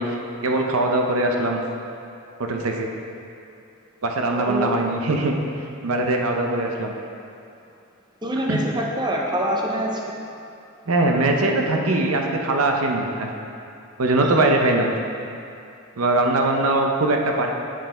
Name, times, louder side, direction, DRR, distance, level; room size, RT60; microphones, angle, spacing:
voice 1, 0.0-1.6 2.4-2.9 4.0-5.3 5.8-6.9 8.3-8.6 10.9-13.3 14.0-14.9 16.0-17.5, right 2 dB, 75° right, 2 dB, 0.7 m, -21 dB
voice 2, 4.3-4.8 8.2-10.2, equal, 20° right, -1 dB, 0.7 m, -25 dB
7.4 x 5.8 x 4.4 m, 2.6 s
head